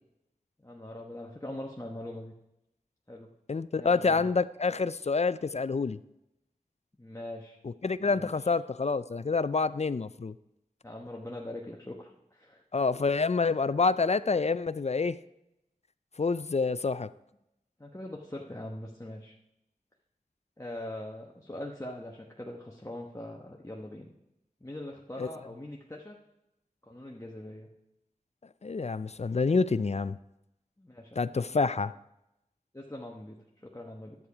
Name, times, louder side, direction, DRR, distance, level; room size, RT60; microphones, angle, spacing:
voice 1, 0.6-2.3 3.1-3.3 3.8-4.3 7.0-7.6 8.0-8.5 10.8-12.6 17.8-19.3 20.6-24.1 24.6-26.2 26.8-27.7 30.8-31.3 32.7-34.2, left 1 dB, 20° left, -1 dB, 1.1 m, -42 dB
voice 2, 3.5-6.0 7.6-10.3 12.7-15.2 16.2-17.1 25.2-25.3 28.6-30.2 31.2-31.9, left 4 dB, 45° left, 15 dB, 0.4 m, -27 dB
11.0 x 8.7 x 4.8 m, 0.87 s
wide cardioid pair, 45°, 15 cm